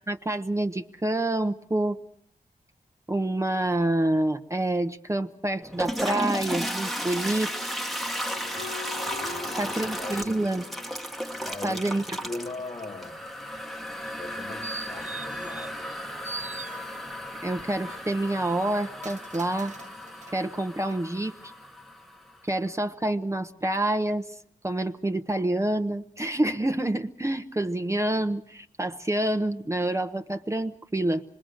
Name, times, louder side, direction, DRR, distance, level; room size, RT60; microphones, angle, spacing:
voice 1, 0.1-2.0 3.1-7.5 9.5-10.6 11.6-12.2 17.4-19.7 20.3-21.3 22.4-24.4 24.6-31.2, right 1 dB, 20° right, 1.0 m, -27 dB
Toilet flush, 5.6-22.4, equal, ahead, 1.3 m, -35 dB
sound 1, 8.3-11.2, left 4 dB, 60° left, 2.0 m, -41 dB
voice 2, 9.2-10.3 11.4-13.3 14.2-16.0, left 2 dB, 40° left, 1.0 m, -40 dB
sound 2, 14.1-16.0 16.2-17.3 17.8-20.4 20.9-21.0, right 4 dB, 50° right, 0.9 m, -42 dB
25.5 x 21.5 x 6.5 m
cardioid pair, 65°, 15 cm